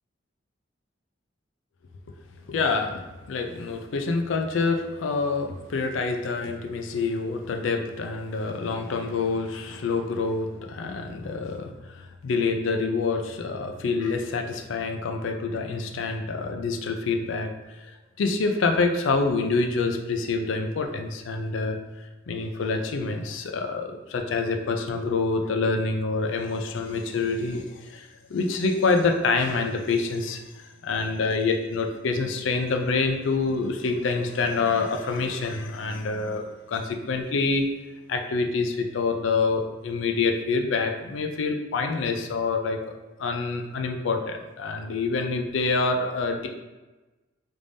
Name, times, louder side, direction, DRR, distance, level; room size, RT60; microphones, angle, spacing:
voice 1, 2.5-3.0 3.3-17.5 17.8-21.8 22.3-37.7 38.1-46.5, left 4 dB, 85° left, 5 dB, 0.4 m, -27 dB
3.4 x 3.3 x 2.6 m, 1.1 s
head